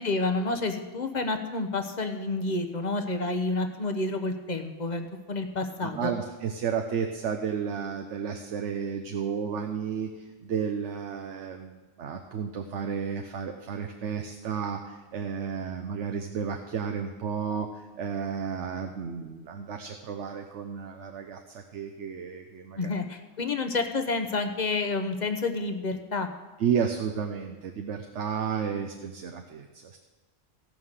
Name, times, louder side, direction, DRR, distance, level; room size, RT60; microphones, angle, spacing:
voice 1, 0.0-6.1 22.8-26.3, left 3 dB, 40° left, 6 dB, 1.0 m, -29 dB
voice 2, 5.8-10.1 10.4-17.7 18.0-22.9 26.6-30.0, right 7 dB, 70° right, 5 dB, 1.1 m, -32 dB
17.0 x 5.6 x 6.6 m, 1.2 s
omnidirectional pair, 1.3 m